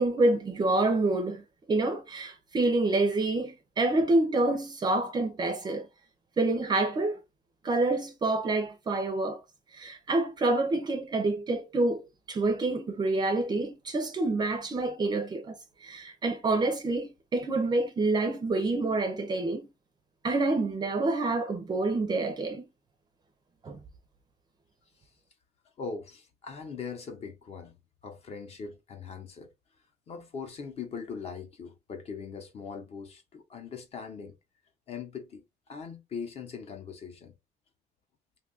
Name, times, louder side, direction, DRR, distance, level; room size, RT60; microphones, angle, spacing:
voice 1, 0.0-5.9 6.4-7.2 7.6-9.4 9.7-19.7 20.2-22.7 23.6-23.8, right 2 dB, 25° right, 0.5 m, -27 dB
voice 2, 25.8-27.8 28.0-29.5 30.1-34.4 34.9-35.4 35.7-37.3, left 5 dB, 35° left, 0.7 m, -40 dB
2.6 x 2.3 x 3.8 m
cardioid pair, 160°, 17 cm